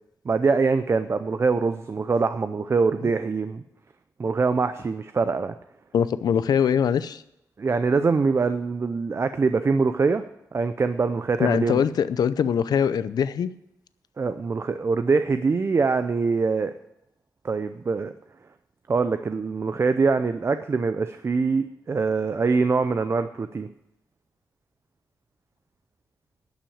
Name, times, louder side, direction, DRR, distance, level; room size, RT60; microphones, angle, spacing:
voice 1, 0.3-3.6 4.2-5.5 7.6-10.2 10.5-11.8 14.2-16.7 17.4-18.1 18.9-23.7, right 4 dB, 40° right, 10 dB, 0.5 m, -23 dB
voice 2, 5.9-7.2 11.4-13.5, left 7 dB, 85° left, 14 dB, 0.5 m, -22 dB
11.5 x 6.1 x 8.6 m, 0.80 s
wide cardioid pair, 100°, 7 cm